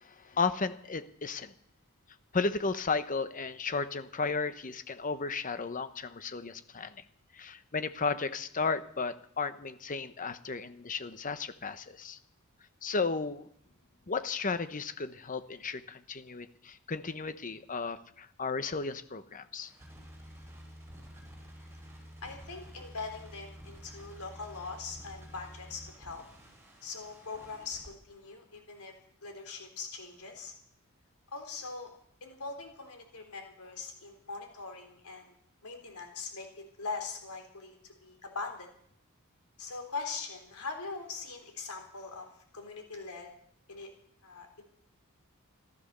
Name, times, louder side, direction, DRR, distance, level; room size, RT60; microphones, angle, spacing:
voice 1, 0.0-1.5 2.3-7.0 7.3-12.2 12.8-13.5 14.1-19.7, left 4 dB, 35° left, 11 dB, 0.9 m, -34 dB
sound 1, 19.6-27.9, equal, 10° right, 5.0 m, -50 dB
voice 2, 22.2-26.2 26.8-28.9 29.2-30.5 31.3-31.9 32.2-35.3 35.6-38.7 39.6-42.3 42.5-43.3 43.7-43.9 44.2-44.6, left 4 dB, 85° left, 4 dB, 3.6 m, -42 dB
14.5 x 13.5 x 6.7 m, 0.67 s
head